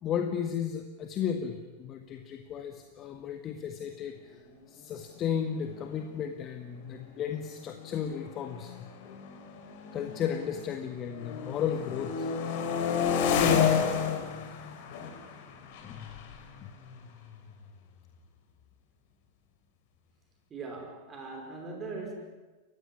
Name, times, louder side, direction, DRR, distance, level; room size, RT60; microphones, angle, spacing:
voice 1, 0.0-4.4 4.7-8.7 9.0-9.2 9.9-12.3 15.8-16.2 16.6-16.7, left 8 dB, 30° left, 6 dB, 1.8 m, -34 dB
sound 1, 5.3-5.4 5.7-6.0 6.8-10.7 11.0-17.7, left 7 dB, 50° left, 3.9 m, -31 dB
voice 2, 20.5-22.1, right 3 dB, 25° right, 2 dB, 5.3 m, -40 dB
29.5 x 15.5 x 9.8 m, 1.2 s
figure-of-eight pair, 90°, 0 cm